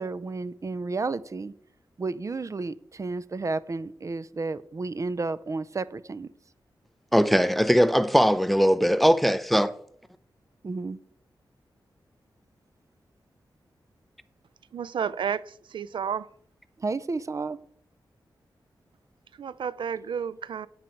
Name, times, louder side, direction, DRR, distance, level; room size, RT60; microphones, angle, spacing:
voice 1, 0.0-1.5 2.0-6.3 10.6-11.0 16.8-17.6, right 3 dB, 40° right, 0.6 m, -32 dB
voice 2, 7.1-9.7, equal, ahead, 0.6 m, -20 dB
voice 3, 14.7-16.3 19.4-20.7, right 7 dB, 80° right, 0.4 m, -31 dB
10.5 x 9.2 x 4.6 m
wide cardioid pair, 100°, 8 cm